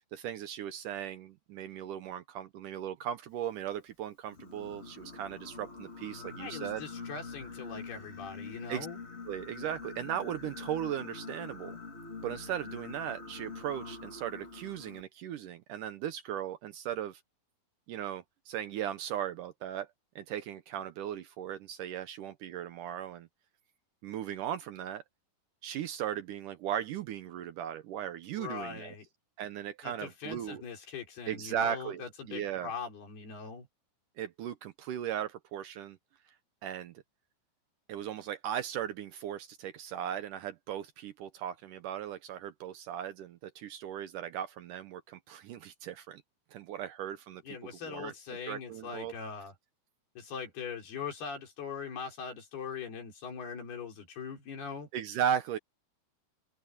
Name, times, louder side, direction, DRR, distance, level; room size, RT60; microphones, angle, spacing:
voice 1, 0.1-6.8 8.7-8.9 9.3-11.8 12.2-17.2 17.9-19.9 20.2-23.3 24.0-25.0 25.6-29.0 29.4-30.6 31.3-32.7 34.2-36.0 36.6-36.9 37.9-46.2 46.5-47.4 47.8-48.1 48.5-49.1 54.9-55.6, right 10 dB, 70° right, 2.1 m, -37 dB
Singing, 4.3-15.0, left 4 dB, 50° left, 0.7 m, -45 dB
voice 2, 6.4-9.0 28.4-29.1 29.8-33.7 47.4-49.5 50.2-54.9, left 6 dB, 85° left, 6.8 m, -41 dB
omnidirectional pair, 4.4 m